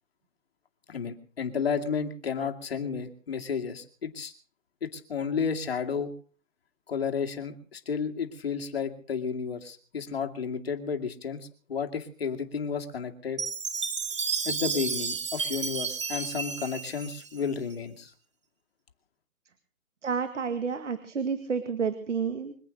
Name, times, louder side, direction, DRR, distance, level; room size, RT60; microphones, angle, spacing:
voice 1, 0.9-4.3 4.8-6.1 6.9-13.4 14.4-18.1, left 6 dB, 50° left, 6 dB, 2.4 m, -32 dB
Chime, 13.4-17.7, right 5 dB, 20° right, 1.2 m, -32 dB
voice 2, 20.0-22.5, right 6 dB, 60° right, 10 dB, 2.0 m, -30 dB
25.5 x 8.8 x 6.4 m, 0.42 s
hypercardioid pair, 180°, 40 cm